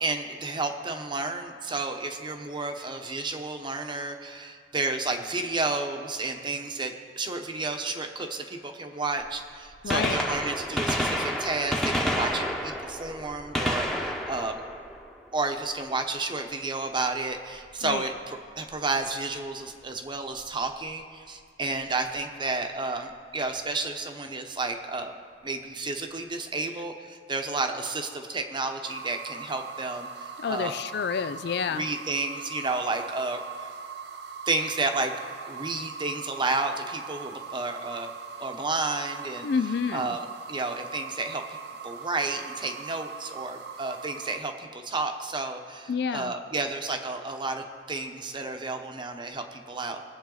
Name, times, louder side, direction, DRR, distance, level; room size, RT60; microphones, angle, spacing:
voice 1, 0.0-14.6 15.3-25.1 25.4-30.8 31.7-33.7 34.5-35.1 35.5-38.1 38.4-39.5 39.9-41.6 41.8-50.0, right 3 dB, 25° right, 5 dB, 0.9 m, -31 dB
Gunshot gunfire, 9.2-9.3 9.7-15.6 17.6-17.7 18.7-18.8 20.4-20.5 21.9-22.0 22.2-22.3, equal, ahead, 1.1 m, -30 dB
voice 2, 9.8-10.2 17.8-18.0 30.4-31.8 39.4-40.1 45.9-46.3, left 6 dB, 65° left, 13 dB, 0.4 m, -29 dB
sound 1, 28.8-44.4, right 6 dB, 65° right, 0.7 m, -41 dB
21.5 x 7.9 x 3.9 m, 2.1 s
head